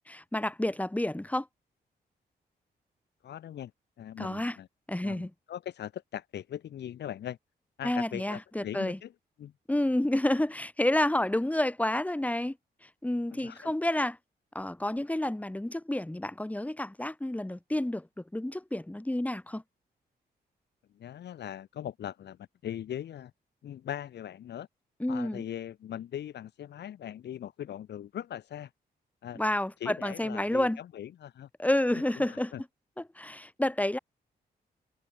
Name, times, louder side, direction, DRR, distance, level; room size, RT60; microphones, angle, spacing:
voice 1, 0.1-1.5 4.2-4.6 4.9-5.3 7.8-9.0 9.7-12.6 13.0-14.2 14.5-19.6 25.0-25.4 29.3-30.8 31.6-32.5 33.2-34.0, left 1 dB, 10° left, 2.3 m, -29 dB
voice 2, 3.2-3.7 4.0-4.7 5.0-7.4 7.8-9.1 9.4-9.5 13.3-13.7 20.9-23.3 23.6-24.7 25.1-28.7 29.2-29.4 29.8-31.5 31.9-32.6, left 10 dB, 90° left, 2.0 m, -40 dB
cardioid pair, 95°, 17 cm